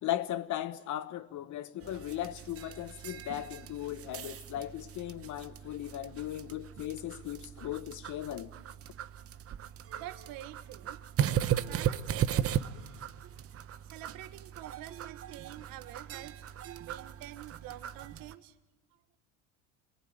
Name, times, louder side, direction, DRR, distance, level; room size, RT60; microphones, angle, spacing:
voice 1, 0.0-8.5, left 13 dB, 50° left, 1.4 m, -37 dB
sound 1, 1.8-18.3, right 10 dB, 40° right, 1.0 m, -37 dB
voice 2, 9.9-11.0 11.6-12.7 13.8-16.5 16.8-18.6, right 14 dB, 65° right, 1.5 m, -47 dB
27.5 x 19.0 x 9.6 m
supercardioid pair, 105°, 37 cm